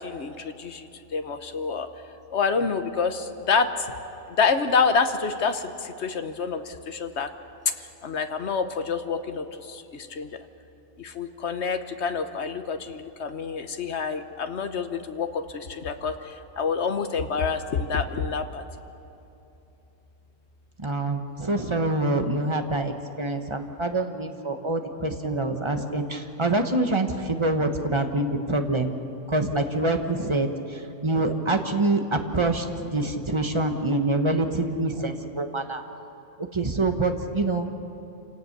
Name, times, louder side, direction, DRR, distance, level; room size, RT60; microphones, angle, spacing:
voice 1, 0.0-1.9 2.3-3.7 4.4-7.3 7.7-10.3 11.0-18.6, left 5 dB, 60° left, 8 dB, 1.3 m, -27 dB
voice 2, 20.8-28.9 29.3-32.7 32.9-35.8 36.5-37.7, right 2 dB, 25° right, 5 dB, 1.3 m, -26 dB
27.5 x 17.5 x 6.8 m, 2.9 s
omnidirectional pair, 1.3 m